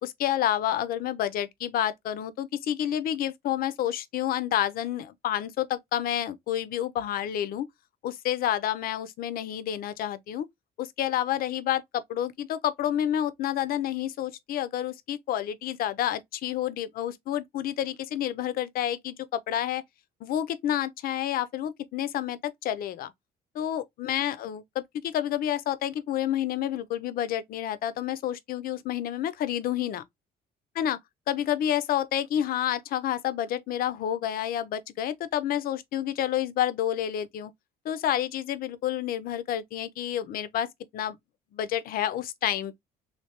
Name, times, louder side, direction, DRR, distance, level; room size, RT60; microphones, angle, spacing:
voice 1, 0.0-7.7 8.0-10.5 10.8-19.8 20.2-23.1 23.5-30.0 30.8-31.0 31.3-37.5 37.8-41.2 41.5-42.8, left 11 dB, 60° left, 0.5 m, -29 dB
3.2 x 2.6 x 2.8 m
cardioid pair, 110°, 17 cm